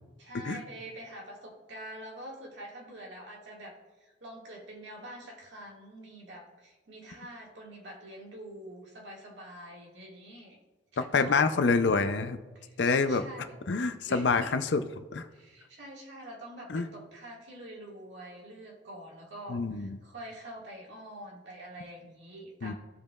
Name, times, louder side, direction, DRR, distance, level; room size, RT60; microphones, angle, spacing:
voice 1, 0.2-3.7 4.0-10.6 10.9-11.6 12.5-13.6 14.1-14.5 15.3-22.7, right 1 dB, 75° right, -2 dB, 1.9 m, -46 dB
voice 2, 11.0-12.4 12.8-13.2 13.7-15.3 16.7-16.9 19.5-20.0 22.6-22.7, left 4 dB, 70° left, 10 dB, 0.5 m, -27 dB
15.5 x 5.1 x 2.4 m, 1.2 s
head